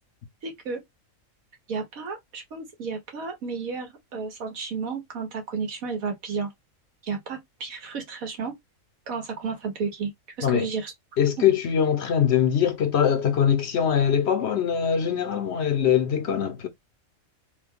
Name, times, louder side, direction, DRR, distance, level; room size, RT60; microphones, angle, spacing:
voice 1, 0.4-0.8 1.7-6.5 7.0-8.5 9.1-10.1 10.4-10.9, right 5 dB, 85° right, 1.5 m, -32 dB
voice 2, 11.2-16.7, left 8 dB, 60° left, 0.8 m, -22 dB
3.1 x 2.2 x 3.5 m
omnidirectional pair, 1.4 m